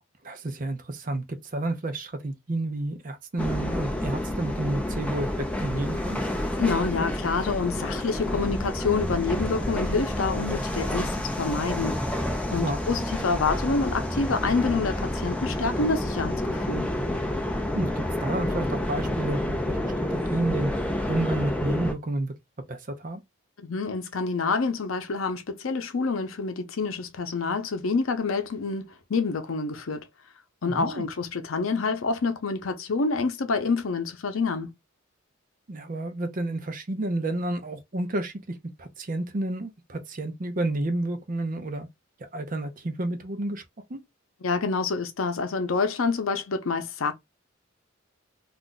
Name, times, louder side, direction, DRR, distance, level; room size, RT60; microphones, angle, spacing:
voice 1, 0.2-6.2 12.6-12.8 17.7-20.7 21.1-22.3 22.7-23.2 30.7-31.1 35.7-41.9 42.3-43.6 43.9-44.0, right 2 dB, 40° right, 0.6 m, -30 dB
sound 1, 3.4-21.9, left 1 dB, 5° left, 0.4 m, -29 dB
voice 2, 6.6-12.3 12.5-16.9 23.6-30.1 30.6-34.7 44.4-47.1, left 4 dB, 80° left, 0.6 m, -27 dB
2.5 x 2.2 x 3.8 m
head